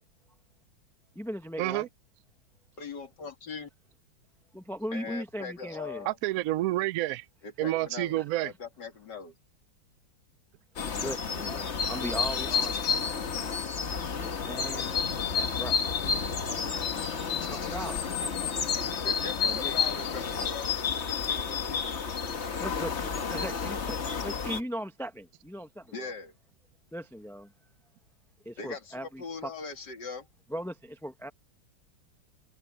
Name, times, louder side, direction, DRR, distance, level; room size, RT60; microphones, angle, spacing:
voice 1, 1.1-1.8 4.5-6.1 8.2-8.3 10.9-13.2 14.2-15.0 15.3-15.9 17.2-18.5 19.4-19.7 21.7-21.8 22.6-26.1 26.9-27.5 28.4-29.5 30.5-31.3, equal, ahead, 0.6 m, -39 dB
voice 2, 2.8-3.7 4.9-6.2 7.4-9.3 19.0-21.8 25.9-26.3 28.6-30.3, left 5 dB, 60° left, 3.0 m, -41 dB
voice 3, 6.0-7.3 7.6-8.5, right 16 dB, 80° right, 0.7 m, -29 dB
sound 1, 10.8-24.6, left 6 dB, 40° left, 1.3 m, -30 dB
omnidirectional pair, 2.1 m